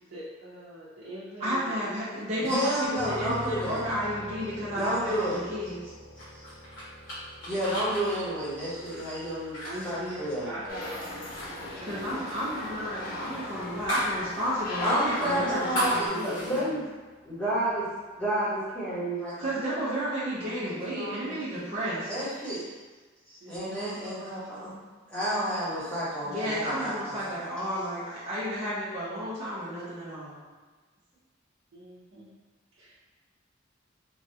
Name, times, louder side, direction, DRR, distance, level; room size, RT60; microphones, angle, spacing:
voice 1, 0.1-2.1 8.4-8.7 9.6-12.2 20.4-21.5 23.4-24.4 31.7-32.3 32.8-33.0, right 1 dB, 85° right, -9 dB, 0.6 m, -43 dB
voice 2, 1.4-5.9 11.8-16.7 19.4-22.1 26.2-30.4, equal, 35° right, -10 dB, 0.6 m, -32 dB
voice 3, 2.4-3.8 4.7-5.4 7.4-9.6 9.8-10.5 14.8-16.8 17.2-17.9 18.1-19.5 22.1-22.6 23.3-24.7 25.1-27.4, right 1 dB, 5° left, -11 dB, 1.1 m, -30 dB
sound 1, 2.9-16.7, left 1 dB, 20° right, 1.0 m, -47 dB
sound 2, 6.2-10.8 11.1-11.5 11.7-14.2 14.5-14.6 15.1-16.6, equal, 80° left, 1.3 m, -35 dB
school ambience, 10.7-16.1, left 2 dB, 50° left, 0.5 m, -37 dB
3.1 x 2.4 x 2.7 m, 1.4 s
head